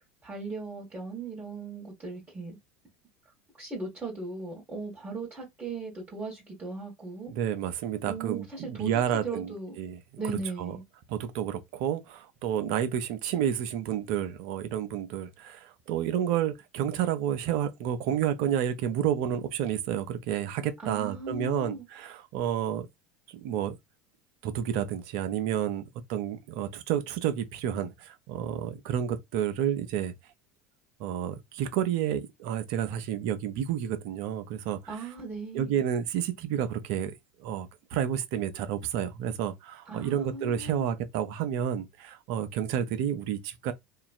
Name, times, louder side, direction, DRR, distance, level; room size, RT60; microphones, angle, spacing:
voice 1, 0.2-2.6 3.6-7.3 8.0-9.8 10.2-10.8 20.8-21.8 34.9-35.8 39.9-40.9, right 3 dB, 20° right, 1.5 m, -38 dB
voice 2, 7.3-10.0 10.2-10.8 11.1-22.9 23.3-23.8 24.4-30.1 31.0-34.8 35.5-37.1 37.4-43.7, right 10 dB, 60° right, 0.6 m, -30 dB
2.8 x 2.5 x 2.5 m
figure-of-eight pair, 75°, 8 cm